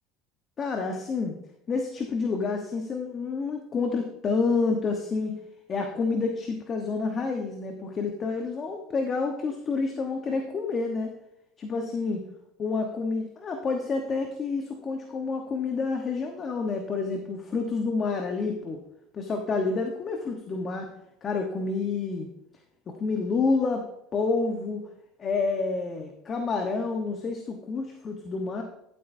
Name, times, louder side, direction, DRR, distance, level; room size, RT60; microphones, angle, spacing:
voice 1, 0.6-1.4 1.7-5.4 5.7-11.1 11.6-12.2 12.6-18.8 19.1-20.9 21.2-22.3 22.9-23.8 24.1-24.9 25.2-28.6, left 4 dB, 35° left, 4 dB, 1.1 m, -29 dB
12.5 x 8.1 x 2.7 m, 0.81 s
supercardioid pair, 105°, 0 cm